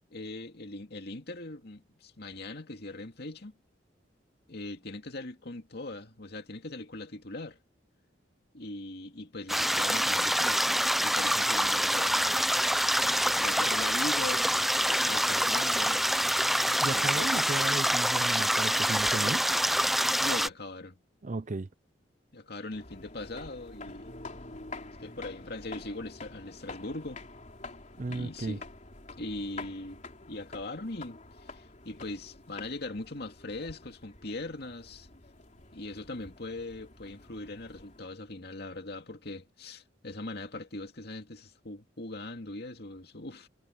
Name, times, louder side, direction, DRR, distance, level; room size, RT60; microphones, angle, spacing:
voice 1, 0.1-3.5 4.5-7.6 8.5-12.4 13.3-16.0 16.9-17.5 20.2-20.9 22.3-24.1 25.0-27.2 28.1-28.6 29.2-35.1 35.7-43.5, left 2 dB, 60° left, 2.4 m, -40 dB
sound 1, 9.5-20.5, equal, ahead, 0.7 m, -26 dB
voice 2, 16.8-19.5 21.2-21.7 28.0-28.6, right 2 dB, 45° right, 0.6 m, -34 dB
sound 2, 22.7-38.0, left 3 dB, 40° left, 3.8 m, -47 dB
head